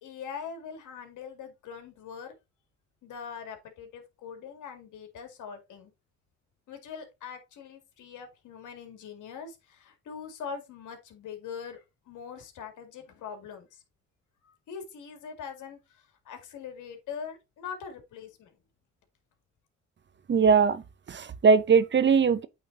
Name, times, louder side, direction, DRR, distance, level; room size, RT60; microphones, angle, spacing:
voice 1, 0.0-2.3 3.0-5.9 6.7-13.8 14.4-18.6, left 6 dB, 80° left, 2.2 m, -42 dB
voice 2, 20.3-20.8 21.1-22.5, right 5 dB, 40° right, 0.7 m, -21 dB
8.6 x 3.7 x 4.0 m
cardioid pair, 90°, 30 cm